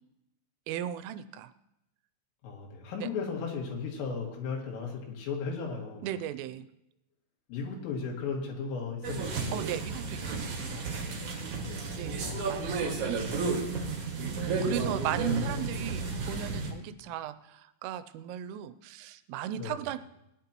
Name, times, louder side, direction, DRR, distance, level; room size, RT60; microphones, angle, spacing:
voice 1, 0.7-1.5 3.0-3.1 6.0-6.7 9.5-10.8 11.9-13.6 13.9-14.0 14.4-20.0, right 11 dB, 85° right, 13 dB, 3.1 m, -37 dB
voice 2, 2.4-6.1 7.5-9.4 11.6-12.5 19.6-19.8, left 5 dB, 80° left, -1 dB, 4.7 m, -36 dB
sound 1, 9.0-16.7, right 3 dB, 55° right, 2.4 m, -33 dB
20.0 x 10.5 x 3.0 m, 0.85 s
omnidirectional pair, 5.8 m